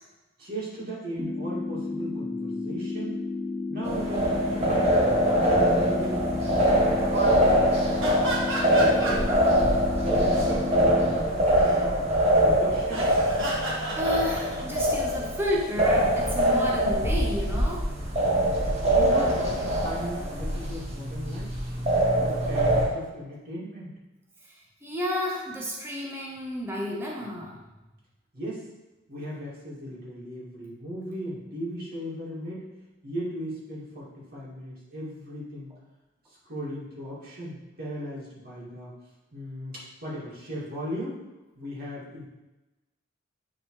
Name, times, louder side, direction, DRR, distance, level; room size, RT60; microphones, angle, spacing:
voice 1, 0.4-3.2 3.7-5.0 5.4-6.8 7.1-8.4 8.7-11.9 12.4-13.1 18.9-21.5 22.2-23.9 28.3-28.6 29.1-32.7 33.0-35.7 36.4-39.0 39.3-41.2 41.6-42.2, equal, 55° right, -7 dB, 2.2 m, -37 dB
sound 1, 1.2-11.2, left 3 dB, 15° left, 0.3 m, -32 dB
sound 2, 3.8-22.9, right 1 dB, 35° right, 1.3 m, -24 dB
sound 3, 5.4-5.6 6.0-6.3 6.6-7.1 7.5-9.6 10.0-10.8 11.2-11.9 12.8-14.8 16.2-16.8, right 1 dB, 75° right, 1.7 m, -34 dB
voice 2, 13.9-17.9 24.8-27.6, equal, 10° right, -3 dB, 0.9 m, -31 dB
9.0 x 4.0 x 3.2 m, 1.0 s
head